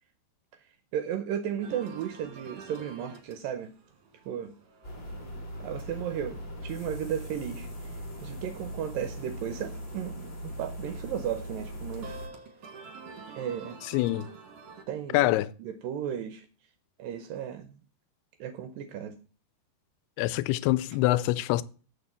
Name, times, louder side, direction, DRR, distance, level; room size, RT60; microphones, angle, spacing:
voice 1, 0.9-3.7 4.3-4.5 5.6-7.7 8.2-12.2 13.4-13.8 14.9-15.3 15.6-16.5 17.0-17.8 18.4-19.2, right 9 dB, 75° right, 2.2 m, -34 dB
sound 1, 1.6-14.8, right 4 dB, 50° right, 2.2 m, -50 dB
sound 2, 4.8-12.3, equal, 35° left, 0.9 m, -40 dB
voice 2, 13.8-14.3 15.1-15.5 20.2-21.6, left 17 dB, 85° left, 2.5 m, -25 dB
6.9 x 6.6 x 7.0 m
omnidirectional pair, 4.6 m